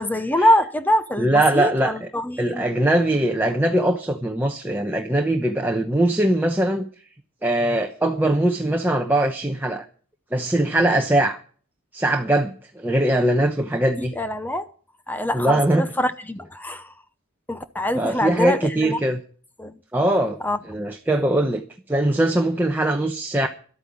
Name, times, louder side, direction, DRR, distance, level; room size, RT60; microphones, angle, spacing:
voice 1, 0.0-2.7 14.2-14.7 15.1-16.9 17.5-19.0 19.6-19.7 20.4-20.6, left 1 dB, 10° left, 0.7 m, -24 dB
voice 2, 1.2-2.1 2.4-6.9 7.4-9.9 10.3-11.4 11.9-14.1 15.3-15.9 17.9-19.2 19.9-20.4 20.7-21.6 21.9-23.5, right 1 dB, 10° right, 0.9 m, -21 dB
12.5 x 8.9 x 7.4 m
head